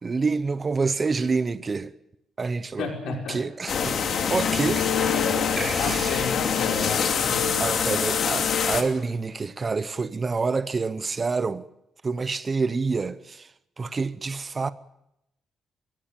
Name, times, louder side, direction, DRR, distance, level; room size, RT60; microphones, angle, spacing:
voice 1, 0.0-1.9 2.4-4.0 4.3-4.9 5.6-6.3 7.6-11.6 12.0-13.5 13.8-14.7, right 4 dB, 30° right, 0.7 m, -27 dB
voice 2, 2.8-3.4 4.0-4.1 5.1-7.9, left 6 dB, 85° left, 5.6 m, -33 dB
sound 1, 3.7-8.8, left 7 dB, 55° left, 2.6 m, -24 dB
23.0 x 16.5 x 9.0 m
cardioid pair, 135°, 0 cm